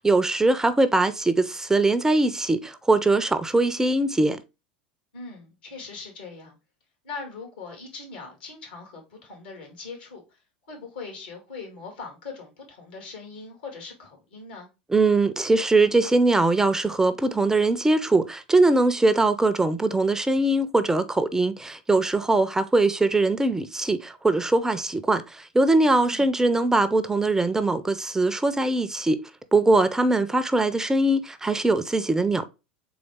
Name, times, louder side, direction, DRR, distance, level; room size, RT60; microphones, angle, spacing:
voice 1, 0.0-4.4 14.9-29.2 29.5-32.5, right 2 dB, 10° right, 0.5 m, -21 dB
voice 2, 5.1-6.6 7.0-10.4 10.7-14.7 26.0-26.2, left 4 dB, 80° left, 2.3 m, -40 dB
4.0 x 3.4 x 3.4 m
hypercardioid pair, 85°, 5 cm